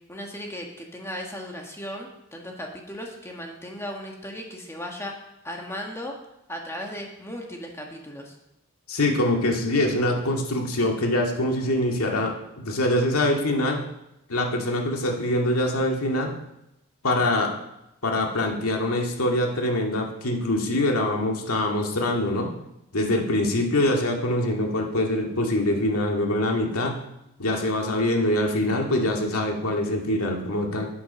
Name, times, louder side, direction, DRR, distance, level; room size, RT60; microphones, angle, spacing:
voice 1, 0.1-5.2 5.4-6.1 6.5-8.4, equal, 10° left, 1 dB, 1.5 m, -36 dB
voice 2, 8.9-13.8 14.3-16.3 17.0-17.5 18.0-22.5 22.9-27.0 27.4-30.9, left 1 dB, 80° left, 1 dB, 2.1 m, -24 dB
9.0 x 8.6 x 6.2 m, 0.87 s
head